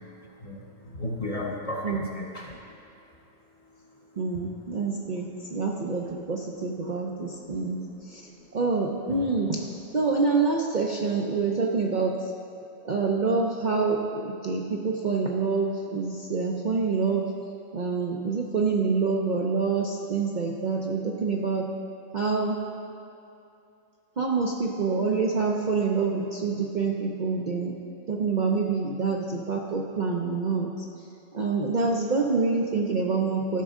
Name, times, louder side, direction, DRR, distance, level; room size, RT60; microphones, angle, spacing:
voice 1, 0.4-2.6 7.5-7.7 9.1-9.2, left 1 dB, 35° left, -2 dB, 0.7 m, -34 dB
voice 2, 4.2-7.8 8.1-8.2 8.5-9.7 9.9-12.1 12.8-17.3 17.7-21.7 22.1-22.6 24.2-27.7 28.1-30.7 31.3-33.6, right 4 dB, 50° right, -1 dB, 0.6 m, -26 dB
14.0 x 6.1 x 3.6 m, 2.6 s
omnidirectional pair, 1.4 m